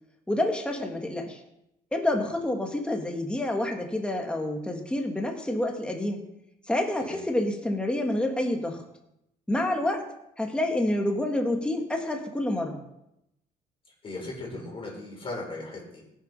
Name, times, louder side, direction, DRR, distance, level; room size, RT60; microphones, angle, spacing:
voice 1, 0.3-1.4 1.9-6.2 6.7-8.8 9.5-10.0 10.4-12.8, left 1 dB, 5° left, 1 dB, 2.1 m, -28 dB
voice 2, 14.0-16.0, left 2 dB, 35° left, -3 dB, 5.5 m, -37 dB
16.5 x 7.3 x 5.7 m, 0.82 s
cardioid pair, 110°, 17 cm